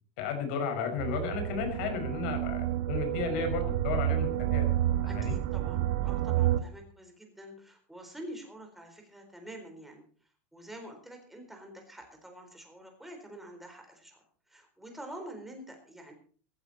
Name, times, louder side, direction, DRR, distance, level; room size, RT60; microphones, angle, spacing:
voice 1, 0.2-4.7 5.0-5.4, left 6 dB, 60° left, 6 dB, 5.6 m, -34 dB
sound 1, 1.0-6.6, right 12 dB, 60° right, 1.2 m, -29 dB
voice 2, 5.1-10.0 10.5-16.1, right 1 dB, 5° right, 3 dB, 4.1 m, -47 dB
15.5 x 15.0 x 4.2 m, 0.43 s
supercardioid pair, 150°, 7 cm